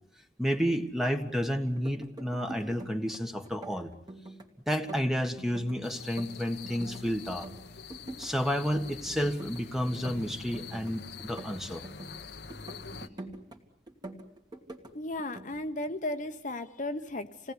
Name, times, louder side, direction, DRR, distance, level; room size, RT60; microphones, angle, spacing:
voice 1, 0.4-3.9 4.7-7.5 8.2-11.8, equal, ahead, 6 dB, 1.6 m, -31 dB
sound 1, 1.7-3.2 3.5-4.5 4.7-7.0 7.3-8.3 8.6-9.6 9.9-12.2 12.5-13.6 13.9-14.9 15.2-15.5, right 2 dB, 25° right, 2.6 m, -45 dB
sound 2, 5.8-13.1, left 5 dB, 65° left, 1.0 m, -45 dB
voice 2, 14.9-17.5, left 1 dB, 45° left, 7 dB, 1.1 m, -35 dB
28.0 x 18.5 x 9.8 m, 0.75 s
head